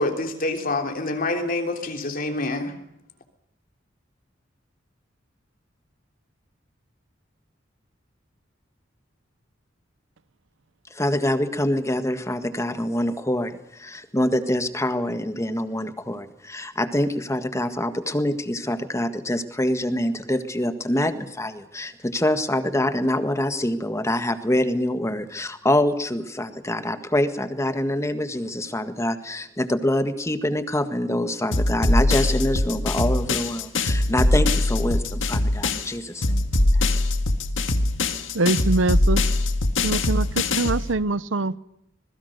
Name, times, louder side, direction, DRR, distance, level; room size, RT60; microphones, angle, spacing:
voice 1, 0.0-2.7, left 2 dB, 50° left, 3.3 m, -26 dB
voice 2, 10.9-36.4, left 1 dB, 15° left, 1.7 m, -25 dB
sound 1, 31.5-35.9 36.2-40.9, left 2 dB, 80° left, 1.9 m, -22 dB
voice 3, 38.3-39.2 39.8-41.6, right 2 dB, 90° right, 0.8 m, -23 dB
26.0 x 21.0 x 6.7 m
head